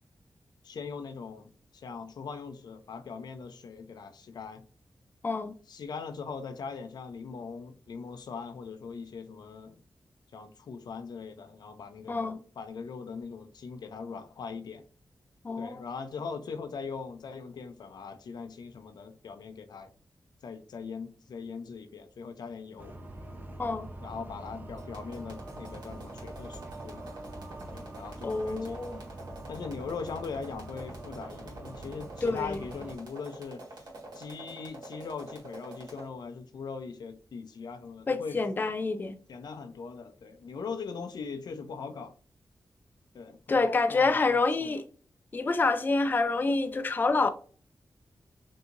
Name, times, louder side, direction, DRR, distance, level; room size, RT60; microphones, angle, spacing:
voice 1, 0.6-4.6 5.7-9.8 10.3-14.8 15.6-19.9 20.4-22.9 24.0-27.0 27.7-28.8 29.5-33.6 34.1-38.4 39.3-42.1 43.1-44.8, left 5 dB, 80° left, 0.5 m, -40 dB
voice 2, 12.1-12.4 15.4-15.8 23.6-23.9 28.2-29.0 32.2-32.6 38.1-39.2 43.5-44.8 45.3-47.3, left 3 dB, 30° left, 0.4 m, -27 dB
sound 1, 22.8-33.0, right 1 dB, 25° right, 0.6 m, -44 dB
sound 2, 24.8-36.0, right 2 dB, 80° right, 1.7 m, -46 dB
5.6 x 2.7 x 2.5 m
wide cardioid pair, 115°, 7 cm